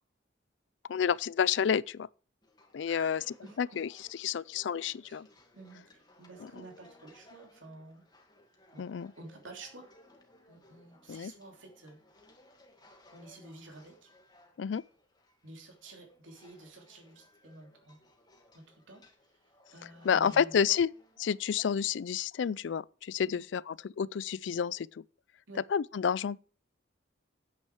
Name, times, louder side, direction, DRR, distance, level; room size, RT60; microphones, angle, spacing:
voice 1, 0.9-2.1 2.7-3.2 3.6-3.9 4.2-5.3 6.4-6.5 8.8-9.1 11.1-11.3 14.6-14.8 20.0-20.9 21.2-25.0 25.7-26.4, left 7 dB, 70° left, 0.4 m, -30 dB
sound 1, 2.4-22.1, left 1 dB, 20° left, 2.0 m, -62 dB
voice 2, 2.9-3.8 5.0-5.3 5.5-8.0 8.7-8.8 9.2-9.9 10.5-12.0 13.1-14.1 15.4-18.0 18.5-19.0 19.7-20.8 23.3-23.4 25.5-25.6, right 2 dB, 90° right, 3.1 m, -51 dB
9.5 x 8.5 x 4.7 m
head